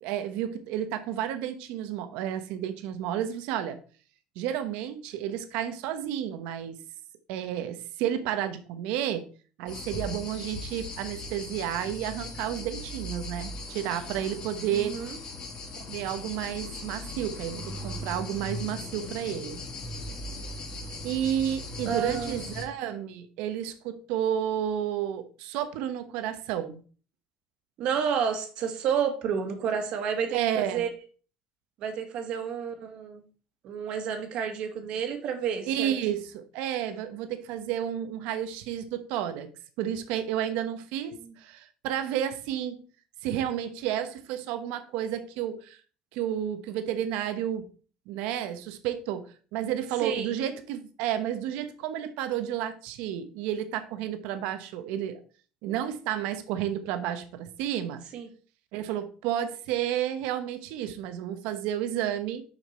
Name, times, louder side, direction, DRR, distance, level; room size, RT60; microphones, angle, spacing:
voice 1, 0.0-3.8 4.4-6.8 7.3-9.2 9.6-14.9 15.9-19.6 21.0-26.8 30.3-30.8 35.7-39.5 39.8-42.8 43.2-45.8 46.1-47.7 48.1-49.3 49.5-55.2 55.6-58.0 58.7-62.4, right 10 dB, 75° right, 9 dB, 1.1 m, -31 dB
sound 1, 9.7-22.6, left 2 dB, 40° left, 2.4 m, -38 dB
voice 2, 14.7-15.2 21.9-22.4 27.8-30.9 31.8-33.2 33.6-36.0 41.1-41.4 50.0-50.4 58.1-58.3, right 7 dB, 55° right, 6 dB, 1.8 m, -30 dB
6.2 x 5.8 x 4.3 m, 0.39 s
cardioid pair, 130°, 2 cm